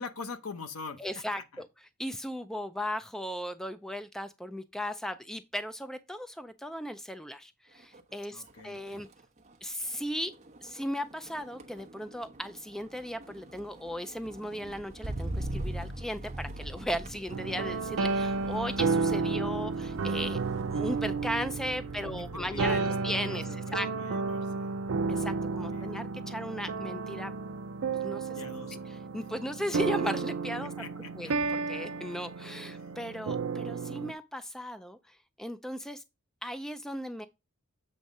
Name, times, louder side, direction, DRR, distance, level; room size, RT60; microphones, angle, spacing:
voice 1, 0.0-1.0 1.3-1.6 8.3-9.0 22.0-22.9 23.3-24.7 25.6-26.0 28.3-28.9 30.8-31.3, left 4 dB, 70° left, 0.9 m, -43 dB
voice 2, 1.0-1.7 2.0-9.1 9.6-10.3 10.6-20.4 20.7-23.9 25.1-27.3 28.0-28.4 28.9-30.7 31.2-36.0 36.4-37.3, equal, ahead, 0.3 m, -36 dB
Motor vehicle (road), 7.8-8.1 8.5-22.9 23.3-23.7, right 1 dB, 30° right, 1.0 m, -42 dB
sound 1, 17.3-34.1, right 4 dB, 65° right, 0.5 m, -32 dB
7.9 x 3.6 x 5.3 m
head